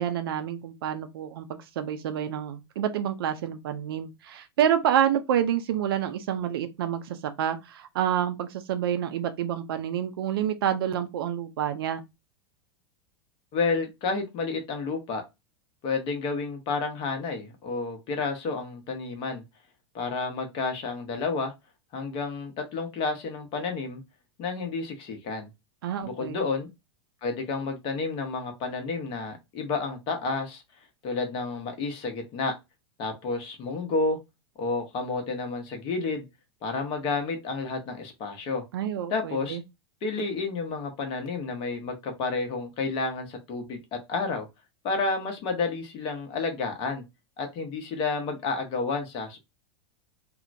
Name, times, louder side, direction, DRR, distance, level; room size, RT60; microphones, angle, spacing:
voice 1, 0.0-12.0 25.8-26.4 38.7-39.6, right 9 dB, 55° right, 0.4 m, -28 dB
voice 2, 13.5-15.2 15.8-19.4 19.9-21.5 21.9-24.0 24.4-25.5 26.0-26.7 27.2-30.6 31.0-32.5 33.0-34.2 34.6-36.2 36.6-38.6 39.1-39.6 40.0-44.5 44.8-47.0 47.4-49.4, left 4 dB, 35° left, 0.8 m, -30 dB
3.0 x 2.0 x 2.5 m
figure-of-eight pair, 90°, 14 cm